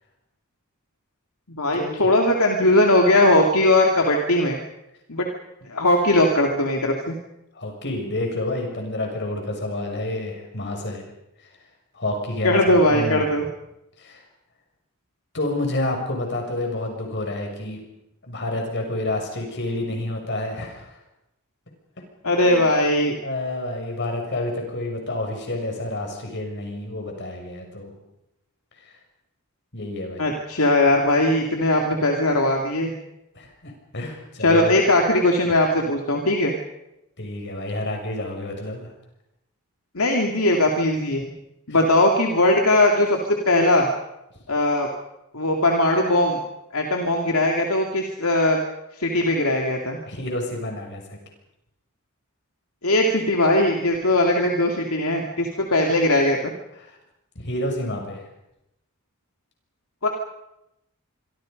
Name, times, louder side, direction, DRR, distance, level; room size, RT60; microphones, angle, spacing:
voice 1, 1.5-4.6 5.1-5.3 5.7-7.2 12.4-13.5 22.2-23.2 30.2-32.9 34.4-36.5 39.9-41.3 41.7-43.2 43.5-43.9 44.5-44.9 45.3-46.4 46.7-48.6 49.0-50.0 52.8-56.5 60.0-60.1, left 1 dB, 75° left, 1 dB, 2.7 m, -19 dB
voice 2, 7.5-11.0 11.9-13.2 14.0-14.2 15.3-17.8 18.3-21.0 22.4-22.6 23.2-27.9 29.7-30.3 33.3-34.8 37.2-38.9 50.1-51.2 56.8-56.9 57.4-58.3, left 1 dB, 55° left, 2 dB, 6.6 m, -29 dB
26.0 x 25.0 x 5.4 m, 0.86 s
head